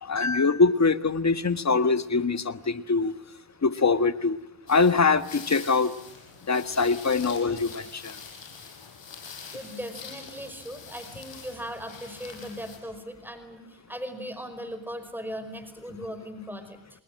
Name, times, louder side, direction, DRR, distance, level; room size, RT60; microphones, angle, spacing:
voice 1, 0.0-3.1 3.6-4.4 4.7-5.9 6.5-8.1, left 4 dB, 35° left, 12 dB, 1.6 m, -23 dB
sound 1, 4.7-12.8, left 5 dB, 65° left, 6.7 m, -45 dB
voice 2, 9.5-16.8, equal, 5° right, 10 dB, 5.1 m, -38 dB
28.0 x 20.5 x 7.7 m, 0.87 s
supercardioid pair, 50°, 46 cm